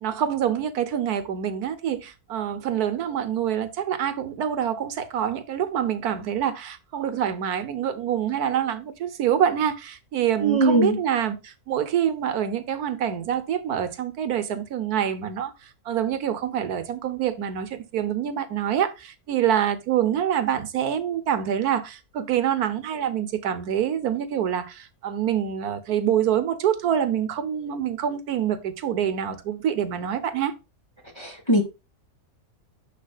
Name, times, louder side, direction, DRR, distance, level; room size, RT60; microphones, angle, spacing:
voice 1, 0.0-15.5 15.9-30.5, right 9 dB, 85° right, 1.5 m, -26 dB
voice 2, 10.4-11.0 31.2-31.6, right 2 dB, 20° left, 1.8 m, -20 dB
10.0 x 6.4 x 2.4 m
omnidirectional pair, 1.6 m